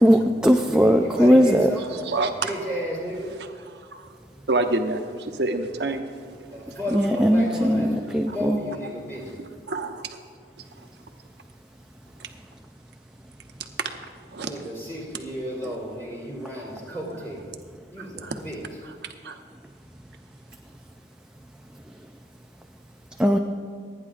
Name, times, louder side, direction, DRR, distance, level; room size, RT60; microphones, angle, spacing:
voice 1, 0.0-1.7 6.9-8.6 23.2-23.4, equal, 5° right, 3 dB, 0.4 m, -18 dB
voice 2, 0.6-2.1 2.4-3.3 6.5-9.4 14.4-17.5 17.9-18.6, equal, 15° left, -5 dB, 3.7 m, -33 dB
voice 3, 2.0-2.5 3.4-4.1 4.5-6.4 8.3-8.4 9.7-10.2 12.2-12.3 14.3-14.5 15.6-15.8 16.9-17.0 18.0-18.4 18.8-19.4, right 2 dB, 75° right, 5 dB, 1.0 m, -29 dB
28.5 x 9.9 x 2.5 m, 2.2 s
head